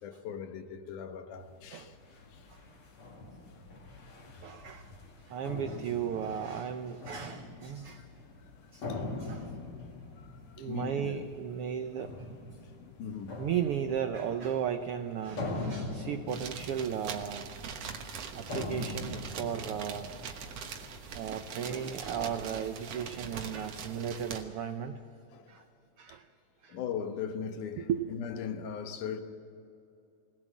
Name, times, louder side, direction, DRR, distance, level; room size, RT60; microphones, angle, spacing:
voice 1, 0.0-2.0 2.3-2.5 3.5-3.6 4.3-4.5 5.0-5.1 8.0-8.1 8.6-9.1 10.2-11.2 12.8-13.4 15.8-15.9 20.4-21.0 25.3-25.7 26.1-26.2 26.7-29.2, left 7 dB, 80° left, 2.7 m, -40 dB
sound 1, 1.4-21.3, left 2 dB, 45° left, 2.8 m, -43 dB
voice 2, 4.4-4.9 5.3-8.0 8.7-8.8 9.2-9.5 10.6-12.1 13.4-17.5 18.0-20.1 21.1-25.0 25.5-25.6 26.0-26.2 26.6-26.8 27.8-28.1, right 8 dB, 85° right, 1.2 m, -35 dB
sound 2, 16.3-24.4, right 6 dB, 60° right, 2.1 m, -42 dB
21.0 x 18.0 x 7.4 m
omnidirectional pair, 3.6 m